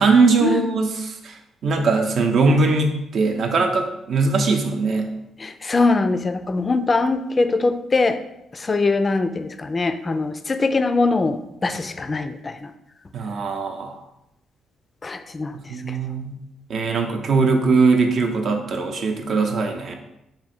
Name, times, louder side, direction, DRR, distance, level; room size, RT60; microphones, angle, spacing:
voice 1, 0.0-1.3 1.6-5.1 13.1-14.0 15.5-16.4 16.7-19.9, right 4 dB, 60° right, 3 dB, 0.6 m, -20 dB
voice 2, 5.4-8.2 8.5-12.7 15.0-15.5 15.9-16.0, left 3 dB, 30° left, 9 dB, 0.3 m, -22 dB
3.6 x 2.6 x 4.2 m, 0.85 s
cardioid pair, 90°, 0 cm